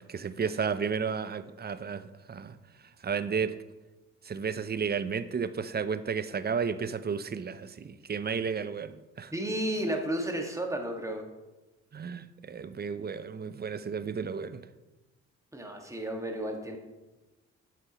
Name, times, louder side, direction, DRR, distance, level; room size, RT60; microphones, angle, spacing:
voice 1, 0.0-2.6 3.0-3.5 4.3-9.3 11.9-14.6, right 6 dB, 30° right, 0.6 m, -33 dB
voice 2, 9.3-11.2 15.5-16.8, right 1 dB, 10° right, 1.8 m, -32 dB
9.0 x 7.6 x 3.0 m
supercardioid pair, 50°, 32 cm